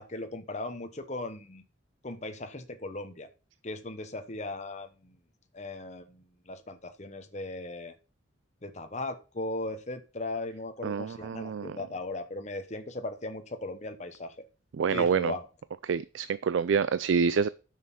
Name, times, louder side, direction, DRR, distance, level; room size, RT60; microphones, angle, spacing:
voice 1, 0.0-1.6 2.0-3.3 3.6-5.2 5.5-8.0 8.6-14.5 14.9-15.5, left 2 dB, 35° left, 8 dB, 1.0 m, -38 dB
voice 2, 10.8-11.8 14.8-15.3 15.9-17.5, right 6 dB, 80° right, 16 dB, 0.4 m, -27 dB
9.4 x 6.5 x 5.5 m, 0.34 s
head